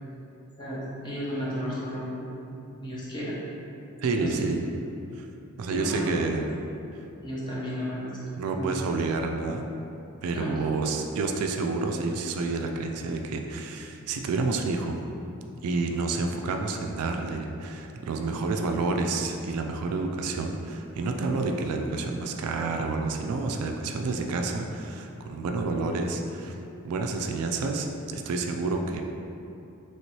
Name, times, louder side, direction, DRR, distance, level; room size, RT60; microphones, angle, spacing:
voice 1, 0.6-3.4 4.2-4.4 5.7-6.1 7.2-8.1 8.6-8.7 10.3-10.6, equal, 20° left, -7 dB, 0.6 m, -33 dB
voice 2, 4.0-4.6 5.2-5.3 5.6-6.4 8.4-9.7 10.2-15.0 15.6-26.5 26.8-29.0, right 3 dB, 85° right, 4 dB, 0.3 m, -29 dB
3.0 x 2.9 x 3.0 m, 2.8 s
head